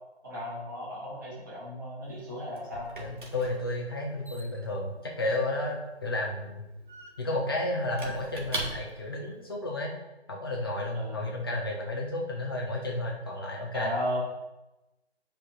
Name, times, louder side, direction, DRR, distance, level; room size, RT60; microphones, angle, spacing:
voice 1, 0.2-2.9 10.9-11.3 13.7-14.2, equal, 20° right, -9 dB, 2.8 m, -35 dB
Squeak / Wood, 2.0-9.2, right 2 dB, 50° right, 1.6 m, -42 dB
voice 2, 3.0-6.7 7.2-9.9 10.3-13.9, left 1 dB, 20° left, -1 dB, 1.1 m, -32 dB
8.4 x 5.2 x 4.8 m, 1.0 s
figure-of-eight pair, 165°, 33 cm